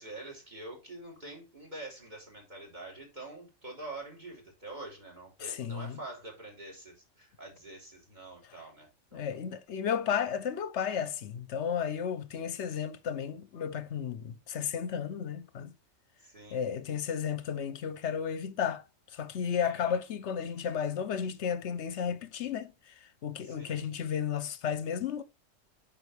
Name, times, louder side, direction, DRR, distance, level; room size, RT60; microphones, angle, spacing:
voice 1, 0.0-9.3 16.2-16.6 19.6-20.0 23.4-23.8, right 2 dB, 35° right, 3.5 m, -46 dB
voice 2, 5.4-6.0 9.1-15.7 16.5-18.8 19.1-25.2, left 8 dB, 65° left, 0.9 m, -33 dB
8.2 x 5.6 x 3.3 m
omnidirectional pair, 1.4 m